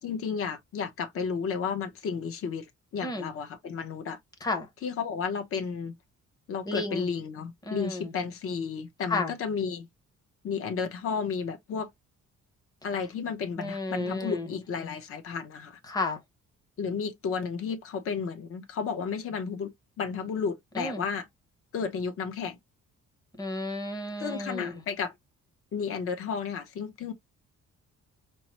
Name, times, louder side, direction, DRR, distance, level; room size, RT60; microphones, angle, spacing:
voice 1, 0.0-2.7 2.9-4.2 4.8-6.0 6.5-9.9 10.4-11.9 12.8-15.8 16.8-19.7 20.0-21.3 21.7-22.6 24.2-25.1 25.7-27.1, left 6 dB, 45° left, 0.8 m, -32 dB
voice 2, 6.7-7.1 7.7-8.1 9.1-9.3 13.6-14.5 15.9-16.2 20.8-21.0 23.4-24.8, left 2 dB, 15° left, 0.8 m, -32 dB
4.6 x 2.1 x 2.9 m
cardioid pair, 175°, 30 cm